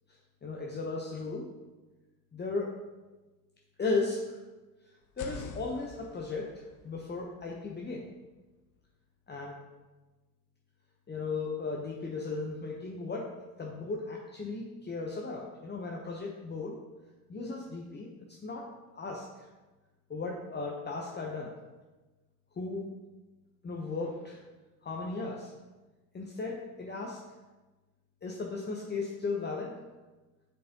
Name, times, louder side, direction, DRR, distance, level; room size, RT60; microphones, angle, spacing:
voice 1, 0.1-1.4 2.3-2.7 3.8-4.4 5.2-8.1 9.3-9.6 11.1-13.3 13.6-16.7 17.3-18.7 18.9-19.4 20.1-21.5 22.5-22.9 23.6-24.4 24.8-25.5 26.1-27.2 28.2-29.7, left 3 dB, 20° left, -2 dB, 1.0 m, -36 dB
sound 1, 5.0-8.9, left 4 dB, 40° left, 0.8 m, -48 dB
8.9 x 5.3 x 3.0 m, 1.2 s
figure-of-eight pair, 55°, 46 cm